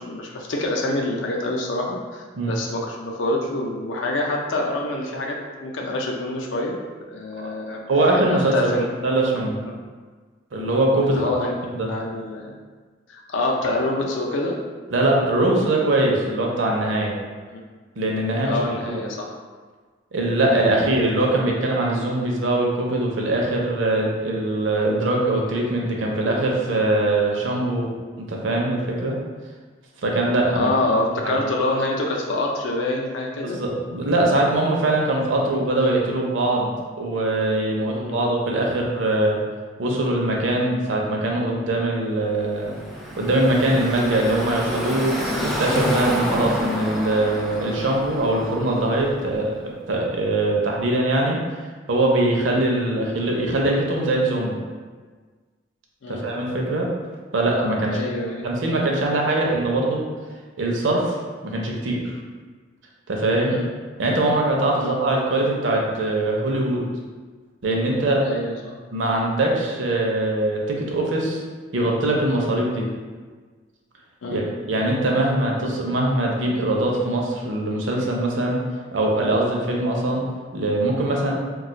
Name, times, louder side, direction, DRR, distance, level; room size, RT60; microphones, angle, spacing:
voice 1, 0.0-6.8 7.1-7.8 8.3-8.9 9.7-9.8 11.1-11.5 11.9-12.5 13.1-14.6 17.5-17.6 18.5-19.3 20.7-20.9 30.5-33.6 37.9-38.2 56.0-56.2 57.9-58.5 63.5-63.7 64.8-65.0 68.2-68.8 74.2-74.4, left 2 dB, 70° left, 0 dB, 0.5 m, -26 dB
voice 2, 7.9-8.7 9.0-9.6 10.5-11.3 11.7-11.9 14.9-17.1 18.0-19.1 20.1-27.9 28.2-29.2 30.0-30.7 31.2-31.3 33.4-36.7 37.0-39.4 39.8-42.7 43.2-51.4 51.9-54.6 56.1-56.9 57.3-58.0 58.4-60.0 60.6-61.2 61.4-62.1 63.1-63.6 64.0-66.8 67.6-68.3 68.9-71.4 71.7-72.9 74.3-78.6 78.9-80.2 80.5-81.3, right 2 dB, 70° right, -1 dB, 0.6 m, -22 dB
Car passing by / Traffic noise roadway noise, 42.5-49.5, equal, ahead, 0.3 m, -29 dB
2.4 x 2.3 x 3.9 m, 1.5 s
head